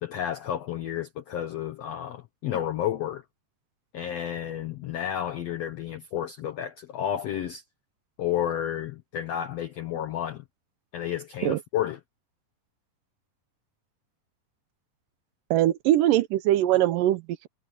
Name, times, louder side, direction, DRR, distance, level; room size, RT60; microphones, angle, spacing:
voice 1, 0.0-3.2 3.9-7.6 8.2-10.4 10.9-12.0, left 10 dB, 75° left, 1.4 m, -31 dB
voice 2, 15.5-17.5, right 13 dB, 80° right, 2.2 m, -22 dB
omnidirectional pair, 4.2 m